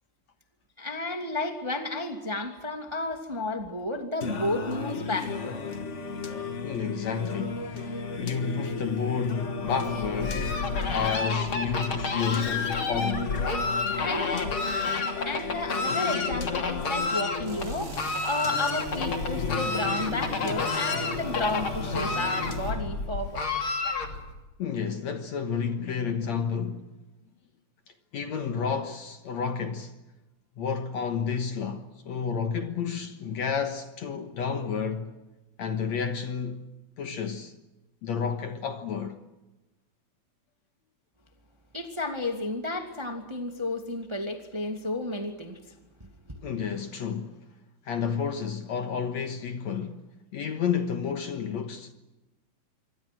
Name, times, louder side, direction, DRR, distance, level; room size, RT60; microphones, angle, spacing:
voice 1, 0.8-5.6 13.9-14.3 15.2-18.0 18.2-23.4 41.7-45.6 46.0-46.4, left 2 dB, 10° right, 1.8 m, -32 dB
Singing, 4.2-23.2, left 5 dB, 75° left, 0.6 m, -35 dB
voice 2, 6.6-10.5 10.9-13.4 24.6-26.9 28.1-29.9 30.6-35.1 35.6-36.7 37.0-37.5 38.0-39.2 46.4-47.4 47.9-51.9, left 6 dB, 60° left, 2.3 m, -31 dB
Fowl, 9.6-24.4, left 3 dB, 40° left, 3.2 m, -31 dB
sound 1, 17.4-22.7, right 4 dB, 40° right, 5.3 m, -41 dB
26.5 x 24.5 x 6.2 m
omnidirectional pair, 4.0 m